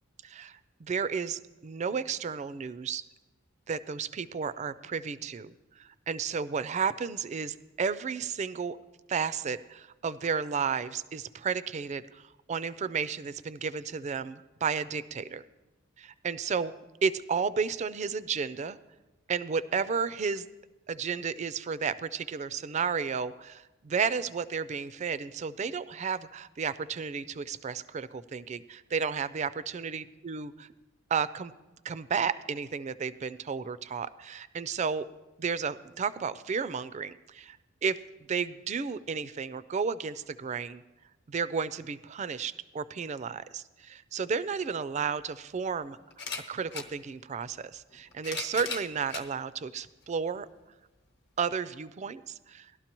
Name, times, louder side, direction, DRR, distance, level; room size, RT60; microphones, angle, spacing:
voice 1, 0.2-3.0 3.7-8.8 9.1-15.4 16.0-16.7 17.0-18.8 19.3-20.5 20.9-30.5 31.1-31.5 31.8-35.1 35.4-37.6 37.8-38.0 38.3-40.8 41.3-46.0 46.5-50.5 51.4-52.7, right 6 dB, 35° right, 15 dB, 0.3 m, -32 dB
sound 1, 44.7-44.8 46.1-46.9 47.9-49.3 50.0-50.1 51.4-51.5, left 5 dB, 60° left, 1.0 m, -38 dB
18.5 x 12.0 x 3.0 m, 1.1 s
head